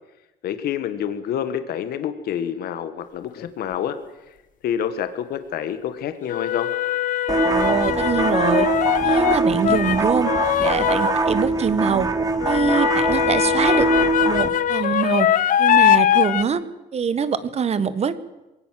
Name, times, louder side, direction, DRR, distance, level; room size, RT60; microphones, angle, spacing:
voice 1, 0.4-4.0 4.3-4.4 4.6-6.7, left 9 dB, 65° left, 10 dB, 1.7 m, -27 dB
sound 1, 3.4-3.5 6.3-11.3 12.4-16.4, left 10 dB, 50° left, 0.9 m, -21 dB
sound 2, 7.3-14.5, right 3 dB, 20° right, 1.7 m, -22 dB
voice 2, 7.4-8.7 9.0-10.3 10.6-12.1 12.4-13.9 14.2-15.3 15.6-16.6 16.9-18.2, right 6 dB, 40° right, 14 dB, 1.5 m, -23 dB
22.0 x 17.5 x 7.7 m, 1.0 s
cardioid pair, 110°, 17 cm